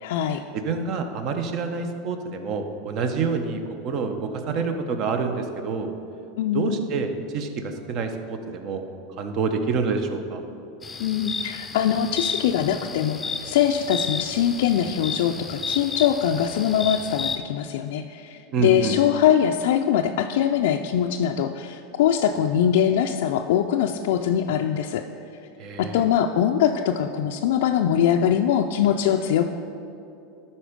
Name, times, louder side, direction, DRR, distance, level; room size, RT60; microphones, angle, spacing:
voice 1, 0.0-0.4 6.4-6.8 11.0-25.0 25.8-29.5, left 9 dB, 75° left, 3 dB, 0.3 m, -22 dB
voice 2, 0.5-5.9 6.5-8.8 9.2-10.4 18.5-19.0 25.6-26.0, right 4 dB, 50° right, 6 dB, 0.9 m, -27 dB
sound 1, 10.8-17.4, left 5 dB, 20° left, 0.5 m, -32 dB
11.5 x 4.4 x 5.1 m, 2.7 s
hypercardioid pair, 110°, 0 cm